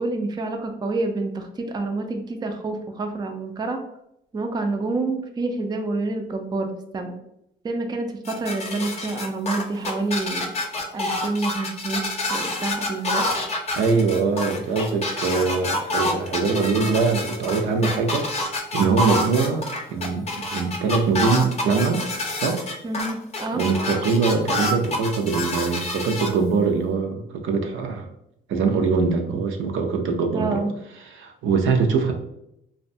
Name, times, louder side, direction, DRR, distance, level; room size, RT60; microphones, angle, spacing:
voice 1, 0.0-3.8 4.3-7.1 7.6-10.5 10.9-13.3 22.8-23.6 30.3-30.8, right 3 dB, 20° right, 4 dB, 0.4 m, -28 dB
sound 1, 8.3-26.3, left 2 dB, 35° left, 0.6 m, -27 dB
voice 2, 13.7-18.3 18.7-19.6 19.9-22.0 22.4-22.6 23.5-28.1 28.5-30.6 31.0-32.1, right 4 dB, 75° right, 4 dB, 0.5 m, -22 dB
2.6 x 2.1 x 2.5 m, 0.79 s
cardioid pair, 90°, 20 cm